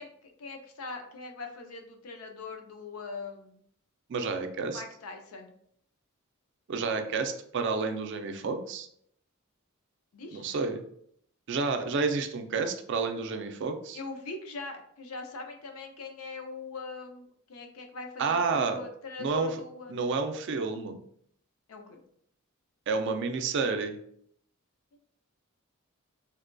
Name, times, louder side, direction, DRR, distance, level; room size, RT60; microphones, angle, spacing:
voice 1, 0.0-3.6 4.6-5.6 10.1-10.4 13.9-20.0 21.7-22.0, left 3 dB, 75° left, 4 dB, 0.5 m, -41 dB
voice 2, 4.1-4.8 6.7-8.9 10.3-10.8 11.5-14.0 18.2-18.8 19.2-19.5 19.9-20.9 22.9-24.0, right 4 dB, 55° right, 7 dB, 0.4 m, -30 dB
3.9 x 2.2 x 2.5 m, 0.66 s
head